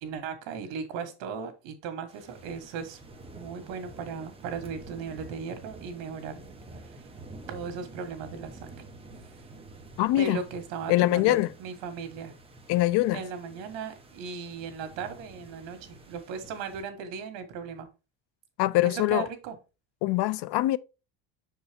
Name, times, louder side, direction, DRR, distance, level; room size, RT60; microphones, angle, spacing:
voice 1, 0.0-3.0 3.3-6.4 6.7-7.1 7.5-8.7 10.2-12.3 13.1-17.9 18.8-19.6, right 6 dB, 80° right, 1.7 m, -37 dB
sound 1, 2.1-16.8, right 2 dB, 15° right, 1.0 m, -49 dB
voice 2, 10.0-10.4 10.9-11.5 12.7-13.2 18.6-19.3 20.0-20.8, left 16 dB, 65° left, 0.5 m, -23 dB
6.6 x 4.7 x 3.5 m
cardioid pair, 150°, 44 cm